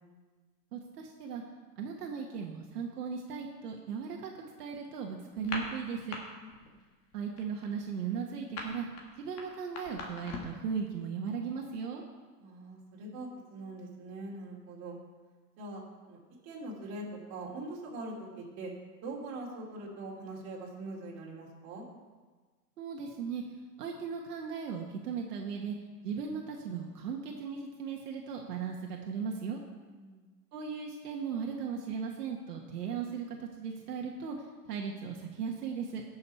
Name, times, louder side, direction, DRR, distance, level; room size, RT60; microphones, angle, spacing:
voice 1, 0.7-1.4 1.8-4.3 4.6-6.2 7.1-8.9 9.2-12.0 22.8-25.8 26.0-29.6 30.5-36.0, right 6 dB, 75° right, 1 dB, 1.6 m, -37 dB
sound 1, 5.3-6.2 6.5-6.8 7.1-10.6, left 3 dB, 30° left, 1.9 m, -41 dB
voice 2, 6.4-6.8 12.4-15.0 15.6-18.7 19.0-21.9 29.9-30.3, right 2 dB, 35° right, -3 dB, 3.2 m, -43 dB
16.5 x 6.7 x 4.4 m, 1.4 s
hypercardioid pair, 145°, 47 cm